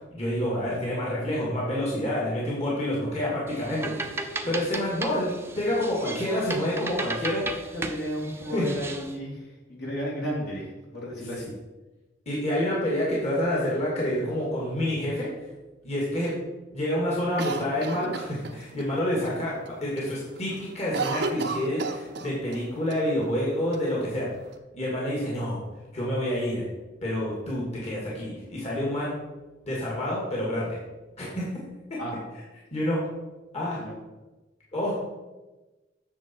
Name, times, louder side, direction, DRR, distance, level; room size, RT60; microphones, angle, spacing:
voice 1, 0.0-7.6 8.5-8.7 12.3-15.3 15.8-16.3 16.7-24.3 24.7-25.6 25.9-26.6 27.0-29.2 29.6-30.7 31.2-31.5 31.9-32.0 32.7-33.0 33.5-33.8 34.7-35.0, left 1 dB, 35° left, -5 dB, 2.4 m, -28 dB
sound 1, 3.5-9.2, right 2 dB, 15° right, 0.7 m, -35 dB
voice 2, 7.7-9.4 9.7-11.5 32.0-32.2 33.8-33.9, equal, 60° left, -4 dB, 3.0 m, -33 dB
Cough, 17.4-18.9 19.2-19.3 19.7-20.1 20.4-22.6 22.9-23.0 23.7-24.5, right 4 dB, 60° right, 0.8 m, -33 dB
9.7 x 6.8 x 4.6 m, 1.1 s
head